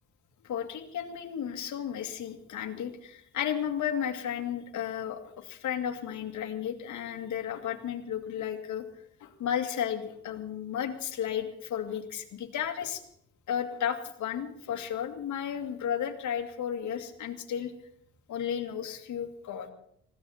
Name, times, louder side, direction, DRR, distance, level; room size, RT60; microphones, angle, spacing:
voice 1, 0.4-8.8 9.2-13.0 13.5-17.7 18.3-19.7, left 9 dB, 70° left, 5 dB, 2.2 m, -33 dB
20.0 x 15.5 x 4.3 m, 0.73 s
cardioid pair, 90°, 30 cm